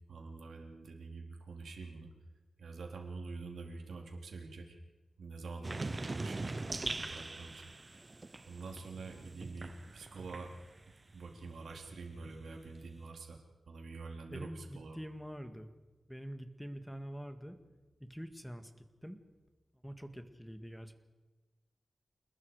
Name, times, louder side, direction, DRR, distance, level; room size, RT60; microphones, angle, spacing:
voice 1, 0.1-2.1 2.6-4.8 5.2-7.7 8.5-10.6 11.1-13.4 13.7-15.0, right 4 dB, 80° right, 1 dB, 3.6 m, -46 dB
sound 1, 5.6-11.0 11.3-13.0, right 2 dB, 30° right, 0.7 m, -42 dB
voice 2, 14.3-15.7 16.1-17.6 18.0-19.2 19.8-20.9, equal, ahead, 8 dB, 1.8 m, -45 dB
29.0 x 20.5 x 4.8 m, 1.2 s
wide cardioid pair, 100°, 0 cm